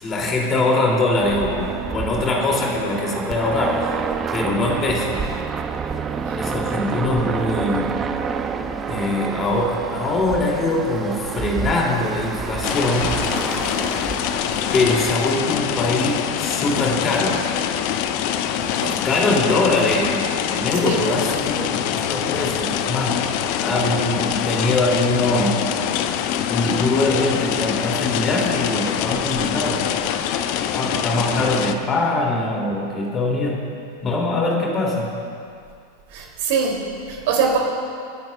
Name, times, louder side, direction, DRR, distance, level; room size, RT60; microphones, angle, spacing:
voice 1, 0.0-3.9 4.3-5.2 6.3-7.9 8.9-13.2 14.7-17.5 18.6-20.2 20.5-25.6 26.5-29.9 30.7-33.6 34.0-35.2, left 2 dB, 25° left, -1 dB, 2.7 m, -22 dB
sound 1, 1.2-15.2, right 5 dB, 20° right, 0.7 m, -28 dB
sound 2, 12.6-31.7, left 10 dB, 45° left, 0.6 m, -24 dB
voice 2, 18.8-19.6 20.7-21.0 36.1-37.6, right 5 dB, 50° right, 0 dB, 2.7 m, -24 dB
29.0 x 10.5 x 2.3 m, 2.3 s
figure-of-eight pair, 90°, 0 cm